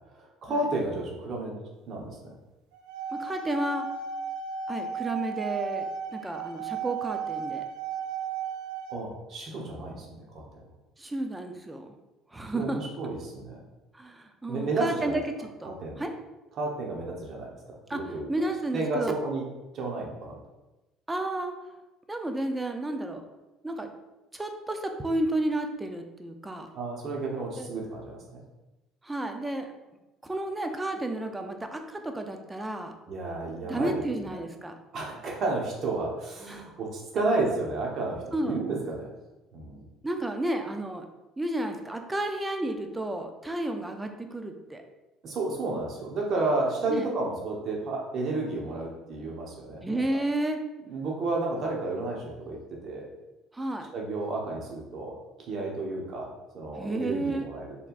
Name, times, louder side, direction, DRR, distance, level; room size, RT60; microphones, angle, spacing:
voice 1, 0.1-1.6 1.9-2.3 8.9-10.6 12.5-13.6 14.5-15.2 15.6-16.0 16.6-18.3 18.7-19.4 19.7-20.4 26.7-28.4 33.1-34.0 34.9-39.1 39.5-39.9 45.2-50.2 50.9-53.1 53.9-55.2 55.5-56.3 56.5-57.8, right 2 dB, 55° right, -1 dB, 1.2 m, -32 dB
sound 1, 2.7-8.9, right 6 dB, 80° right, 0.6 m, -34 dB
voice 2, 3.1-3.9 4.7-7.6 11.0-12.0 12.3-12.8 13.9-16.1 17.9-19.1 21.1-21.5 22.1-23.2 23.6-23.9 24.3-26.7 27.6-27.7 29.0-29.7 30.2-33.0 33.7-34.7 36.5-36.7 38.3-38.6 40.0-41.1 41.4-44.8 46.9-47.1 49.8-50.6 53.5-53.9 56.8-57.5, right 1 dB, 15° right, 5 dB, 0.6 m, -32 dB
4.5 x 3.5 x 2.5 m, 1.0 s
hypercardioid pair, 65°, 0 cm